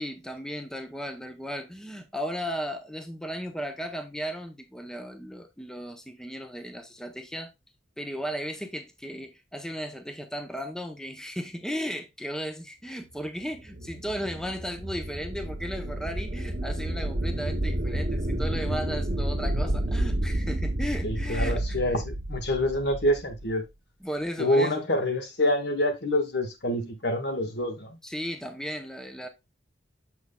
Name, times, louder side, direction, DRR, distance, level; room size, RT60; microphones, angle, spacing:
voice 1, 0.0-7.5 8.0-21.6 21.9-22.0 24.0-24.9 28.0-29.3, equal, 5° left, 0.6 m, -35 dB
sound 1, 13.4-23.5, right 1 dB, 45° right, 0.8 m, -30 dB
voice 2, 21.0-23.6 24.4-28.0, left 1 dB, 60° left, 1.3 m, -26 dB
7.2 x 6.1 x 2.2 m
head